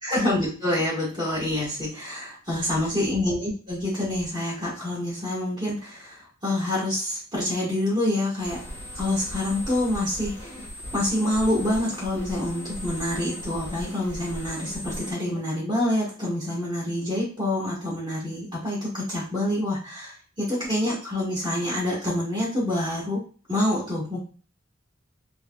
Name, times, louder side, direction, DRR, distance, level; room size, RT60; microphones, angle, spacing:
voice 1, 0.0-8.6 8.9-10.6 10.9-23.2 23.5-24.2, left 1 dB, 25° right, -8 dB, 1.3 m, -27 dB
sound 1, 8.4-15.1, left 1 dB, 10° left, 0.9 m, -37 dB
3.2 x 2.8 x 2.3 m, 0.39 s
head